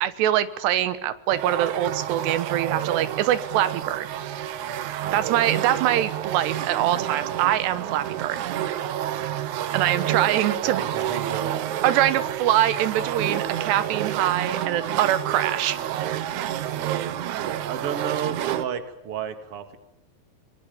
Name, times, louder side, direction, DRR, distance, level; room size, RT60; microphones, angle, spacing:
voice 1, 0.0-4.1 5.1-8.4 9.7-10.8 11.8-15.8, right 12 dB, 85° right, 13 dB, 3.2 m, -23 dB
sound 1, 1.3-18.6, right 11 dB, 70° right, 1.9 m, -29 dB
voice 2, 10.6-11.5 17.4-19.8, right 8 dB, 40° right, 8 dB, 2.6 m, -33 dB
25.5 x 25.0 x 7.2 m, 0.79 s
omnidirectional pair, 4.8 m